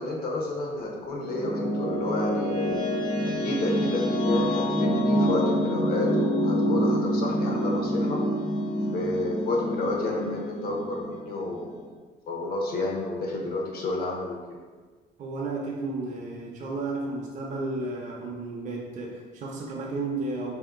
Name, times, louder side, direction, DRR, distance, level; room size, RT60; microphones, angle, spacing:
voice 1, 0.0-3.0 3.2-8.2 8.9-11.8 12.3-14.6, left 2 dB, 65° left, 0 dB, 0.7 m, -30 dB
sound 1, 0.8-11.8, equal, 25° left, 0.5 m, -27 dB
voice 2, 15.2-20.6, right 3 dB, 45° right, -2 dB, 0.5 m, -33 dB
2.7 x 2.5 x 3.6 m, 1.4 s
cardioid pair, 110°, 17 cm